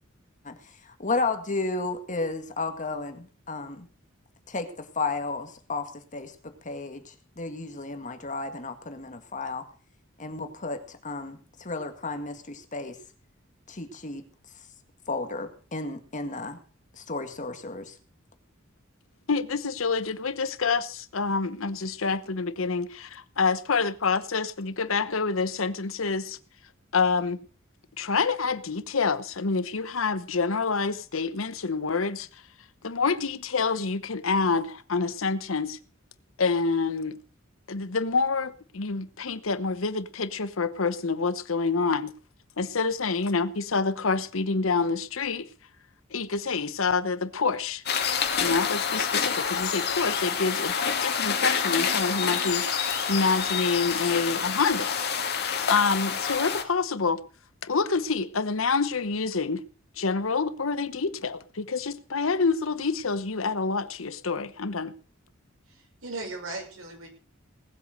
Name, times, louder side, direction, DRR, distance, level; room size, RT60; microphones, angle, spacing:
voice 1, 1.0-3.9 4.5-9.6 10.2-13.0 13.7-14.3 15.1-16.6 17.0-17.9, left 3 dB, 40° left, 1.9 m, -33 dB
voice 2, 19.3-26.4 26.9-27.4 28.0-32.3 32.8-35.8 36.4-37.2 37.7-42.1 42.6-45.5 46.1-47.8 48.4-50.7 51.0-55.0 55.4-57.2 57.6-59.6 60.0-64.9, left 4 dB, 75° left, 1.0 m, -27 dB
sound 1, 47.9-56.6, left 6 dB, 55° left, 2.3 m, -27 dB
voice 3, 65.7-67.1, right 2 dB, 80° right, 6.2 m, -37 dB
18.5 x 8.2 x 6.5 m
head